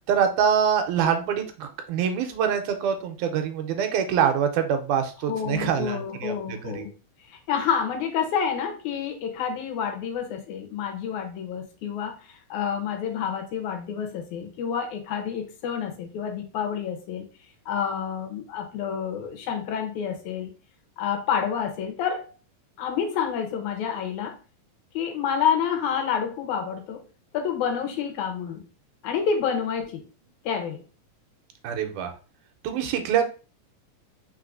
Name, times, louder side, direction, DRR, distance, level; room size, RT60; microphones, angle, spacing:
voice 1, 0.1-6.9 31.6-32.1 32.6-33.3, right 8 dB, 80° right, 6 dB, 2.0 m, -25 dB
voice 2, 5.3-6.9 7.3-17.3 17.7-20.5 21.0-22.3 22.8-24.4 24.9-27.0 27.3-28.6 29.0-30.0 30.4-30.8, left 7 dB, 75° left, 4 dB, 2.1 m, -28 dB
4.7 x 3.8 x 2.5 m, 0.34 s
omnidirectional pair, 3.7 m